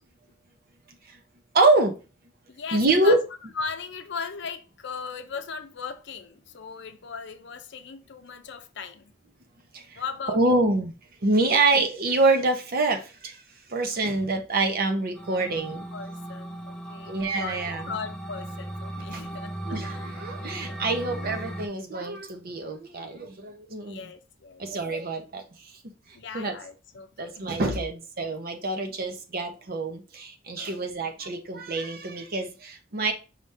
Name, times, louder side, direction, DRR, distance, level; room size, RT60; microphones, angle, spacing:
voice 1, 1.5-2.0 2.7-3.2 9.7-10.0 10.3-10.9 11.2-13.4 13.7-15.8 17.0-17.9 19.1-19.2 19.7-24.1 24.6-25.4 26.3-26.6 27.2-33.1, right 2 dB, 55° right, 0.8 m, -26 dB
voice 2, 2.5-3.2 3.6-9.1 9.9-10.6 11.4-11.7 15.9-21.4 23.8-24.6 26.1-27.9 30.6-31.1, left 5 dB, 65° left, 0.6 m, -38 dB
sound 1, 15.1-21.7, right 1 dB, 5° left, 0.4 m, -37 dB
5.0 x 2.7 x 3.3 m
head